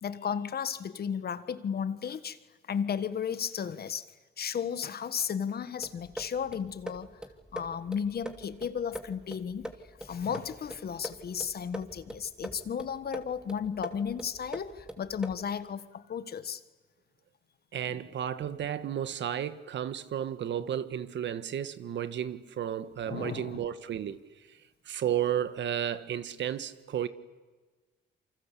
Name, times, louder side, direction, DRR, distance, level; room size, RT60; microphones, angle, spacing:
voice 1, 0.0-2.4 2.7-4.1 4.4-7.2 7.5-9.7 10.0-16.6 17.9-18.0 23.1-23.6, left 7 dB, 50° left, 1.6 m, -34 dB
sound 1, 5.8-15.6, right 1 dB, 5° right, 2.9 m, -43 dB
voice 2, 17.7-24.6 24.8-27.1, right 10 dB, 65° right, 1.7 m, -33 dB
28.0 x 25.0 x 8.5 m
cardioid pair, 90°, 20 cm